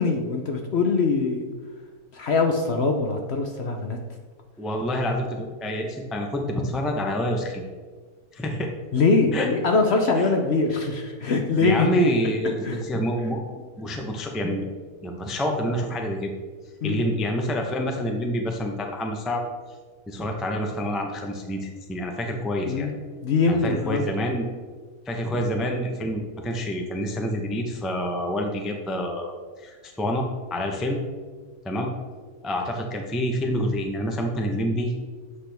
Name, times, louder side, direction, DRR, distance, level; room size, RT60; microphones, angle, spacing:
voice 1, 0.0-1.5 2.1-4.0 8.9-11.9 12.6-12.8 16.8-17.0 22.6-23.0 23.2-24.0, left 4 dB, 55° left, 3 dB, 0.8 m, -23 dB
voice 2, 4.6-7.6 8.3-8.7 9.3-9.5 10.2-10.3 11.6-14.7 15.0-16.3 16.8-19.4 20.1-22.9 23.5-24.4 25.1-30.3 30.5-31.0 31.6-31.9 32.4-34.9, equal, ahead, 1 dB, 0.4 m, -27 dB
8.2 x 6.0 x 3.4 m, 1.5 s
omnidirectional pair, 1.6 m